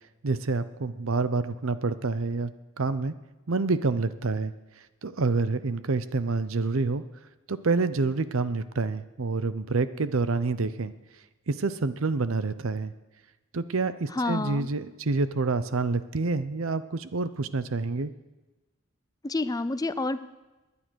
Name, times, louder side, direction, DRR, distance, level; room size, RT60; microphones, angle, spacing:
voice 1, 0.2-2.5 2.8-3.1 3.5-4.5 5.0-7.0 7.5-10.9 11.5-12.9 13.5-18.1, right 3 dB, 75° right, 14 dB, 0.7 m, -27 dB
voice 2, 14.1-14.7 19.2-20.2, left 2 dB, 15° left, 13 dB, 0.5 m, -28 dB
19.5 x 10.0 x 6.3 m, 1.1 s
head